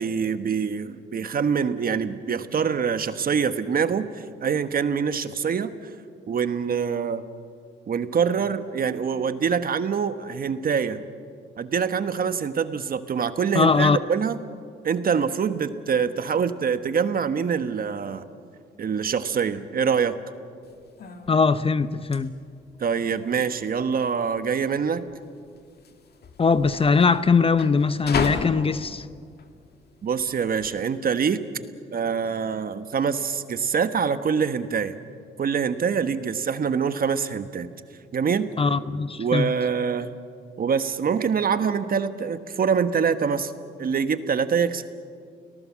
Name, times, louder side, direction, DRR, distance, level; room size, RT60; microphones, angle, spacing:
voice 1, 0.0-5.7 6.3-7.2 7.9-11.0 11.6-14.4 14.8-18.3 18.8-20.2 22.8-25.0 30.0-31.4 31.9-34.9 35.4-37.7 38.1-38.5 39.2-40.1 40.6-43.5 43.8-44.8, right 6 dB, 45° right, 10 dB, 1.3 m, -25 dB
voice 2, 13.5-14.0 21.3-22.3 26.4-29.1 38.6-39.5, left 5 dB, 30° left, 14 dB, 0.7 m, -21 dB
sound 1, 20.6-30.7, left 5 dB, 55° left, 2.0 m, -36 dB
30.0 x 19.0 x 7.4 m, 2.2 s
cardioid pair, 90°, 20 cm